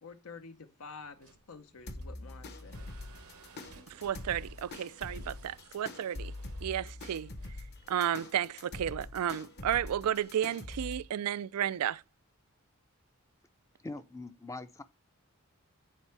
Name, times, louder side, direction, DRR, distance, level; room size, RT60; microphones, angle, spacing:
voice 1, 0.0-2.9, left 4 dB, 70° left, 0.6 m, -49 dB
sound 1, 1.1-8.9, right 4 dB, 75° right, 0.8 m, -59 dB
sound 2, 1.9-11.0, left 2 dB, 50° left, 1.0 m, -44 dB
voice 2, 3.9-6.3 6.6-7.3 7.9-12.0, right 10 dB, 90° right, 0.4 m, -32 dB
voice 3, 13.8-14.8, left 2 dB, 15° left, 0.5 m, -42 dB
9.7 x 4.5 x 3.3 m
head